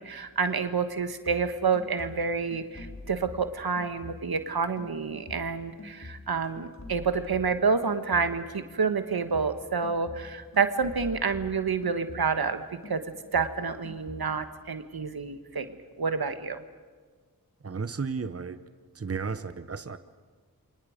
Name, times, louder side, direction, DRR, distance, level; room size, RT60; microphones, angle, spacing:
voice 1, 0.0-13.0 13.3-15.7 16.0-16.6, right 5 dB, 85° right, 9 dB, 1.4 m, -28 dB
sound 1, 1.3-4.5 4.8-8.6 8.8-12.5 12.8-14.2, left 3 dB, 45° left, 3.4 m, -46 dB
voice 2, 17.6-18.6 18.9-20.0, right 5 dB, 40° right, 12 dB, 1.0 m, -33 dB
29.0 x 26.0 x 5.1 m, 1.5 s
wide cardioid pair, 50°, 36 cm